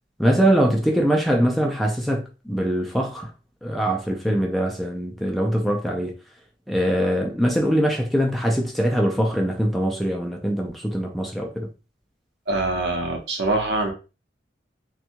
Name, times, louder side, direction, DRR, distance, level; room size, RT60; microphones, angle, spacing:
voice 1, 0.2-3.3 3.6-6.1 6.7-11.7, equal, ahead, 0.3 m, -22 dB
voice 2, 12.5-13.9, right 2 dB, 70° right, 0.8 m, -24 dB
2.6 x 2.3 x 2.8 m
head